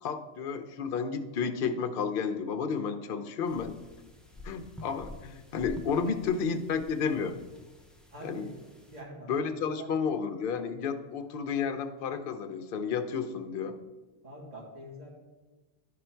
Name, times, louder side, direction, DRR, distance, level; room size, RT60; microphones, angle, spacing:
voice 1, 0.0-3.8 4.4-7.4 8.2-8.4 9.3-13.8, left 6 dB, 55° left, 8 dB, 0.7 m, -31 dB
sound 1, 3.4-9.0, left 1 dB, ahead, 0.3 m, -49 dB
voice 2, 8.1-8.5 8.9-9.3 9.8-9.9 14.2-15.1, right 1 dB, 75° right, -4 dB, 2.0 m, -44 dB
10.5 x 3.8 x 4.4 m, 1.2 s
omnidirectional pair, 1.3 m